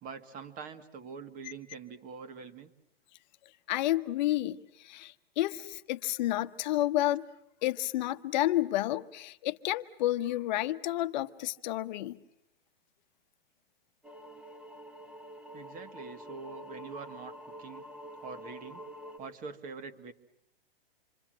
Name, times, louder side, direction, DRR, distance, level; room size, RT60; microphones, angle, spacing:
voice 1, 0.0-2.7 15.5-17.8 18.2-18.8 19.2-20.1, right 5 dB, 25° right, 1.9 m, -44 dB
voice 2, 3.7-7.3 7.6-12.2, left 15 dB, 50° left, 1.1 m, -30 dB
sound 1, 14.0-19.2, equal, 5° right, 1.3 m, -47 dB
27.5 x 24.5 x 7.7 m
hypercardioid pair, 130°, 30 cm